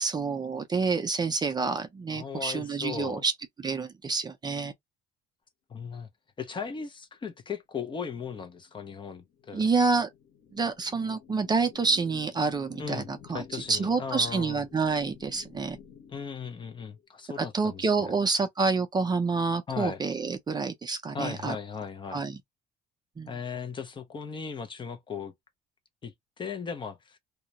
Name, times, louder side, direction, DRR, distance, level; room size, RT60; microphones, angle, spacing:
voice 1, 0.0-3.3 3.6-4.7 9.5-10.1 10.5-15.8 17.4-21.6 22.1-22.4 23.2-23.3, right 4 dB, 25° right, 0.5 m, -28 dB
voice 2, 2.1-3.2 5.7-6.1 6.4-9.6 12.8-14.6 16.1-18.1 19.7-20.0 21.1-22.2 23.3-25.3 26.0-27.2, left 6 dB, 30° left, 0.6 m, -37 dB
sound 1, 8.6-17.1, left 7 dB, 90° left, 0.9 m, -52 dB
2.3 x 2.1 x 2.7 m
cardioid pair, 110°, 17 cm